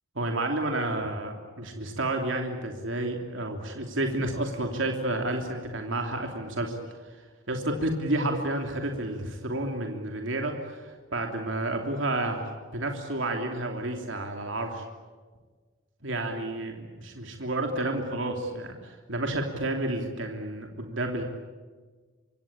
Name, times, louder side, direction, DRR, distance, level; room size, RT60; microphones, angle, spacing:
voice 1, 0.1-6.8 7.0-7.2 7.5-14.8 16.0-21.2, right 1 dB, 70° right, 3 dB, 3.1 m, -30 dB
26.5 x 24.5 x 8.7 m, 1.5 s
head